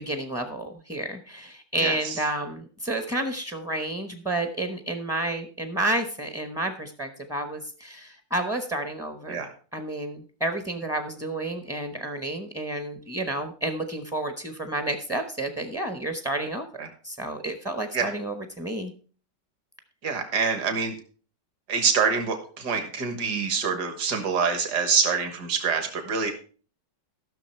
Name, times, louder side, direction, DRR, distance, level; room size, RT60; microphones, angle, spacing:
voice 1, 0.0-9.4 9.7-18.9, right 1 dB, 5° right, 6 dB, 0.4 m, -30 dB
voice 2, 1.8-2.2 9.3-9.5 16.8-16.9 17.9-18.1 20.0-20.9 21.7-26.3, right 5 dB, 65° right, 6 dB, 2.0 m, -26 dB
14.0 x 6.4 x 4.4 m, 0.40 s
omnidirectional pair, 2.0 m